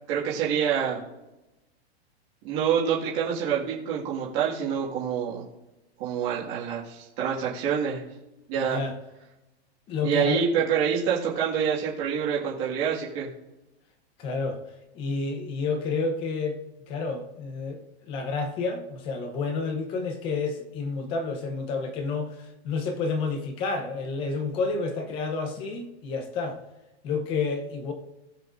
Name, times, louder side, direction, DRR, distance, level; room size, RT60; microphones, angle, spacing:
voice 1, 0.1-1.0 2.4-5.4 6.0-8.0 8.5-8.8 10.0-13.3, right 7 dB, 30° right, 2.0 m, -26 dB
voice 2, 8.6-8.9 9.9-10.4 14.2-14.6 14.9-16.6 16.9-17.8 18.1-26.6 27.0-27.9, left 4 dB, 15° left, 0.8 m, -30 dB
19.5 x 7.5 x 2.6 m
supercardioid pair, 175°, 33 cm